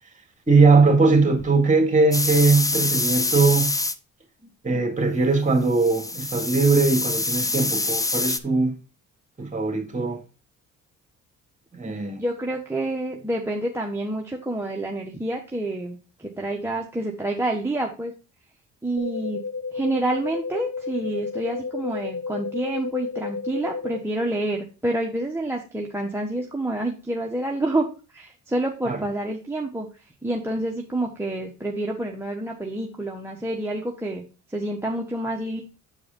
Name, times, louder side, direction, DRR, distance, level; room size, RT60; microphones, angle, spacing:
voice 1, 0.5-3.7 4.6-8.8 9.4-10.2 11.7-12.2 28.9-29.0, right 3 dB, 25° right, 2.1 m, -20 dB
sound 1, 2.1-4.0 5.7-8.4, left 2 dB, 10° left, 0.5 m, -25 dB
voice 2, 11.8-18.1 18.8-19.4 19.7-27.9 28.1-29.9 30.2-34.2 34.5-35.6, right 1 dB, 10° right, 1.1 m, -28 dB
sound 2, 19.0-24.0, left 4 dB, 70° left, 1.0 m, -32 dB
7.8 x 4.7 x 3.7 m
cardioid pair, 90°, 30 cm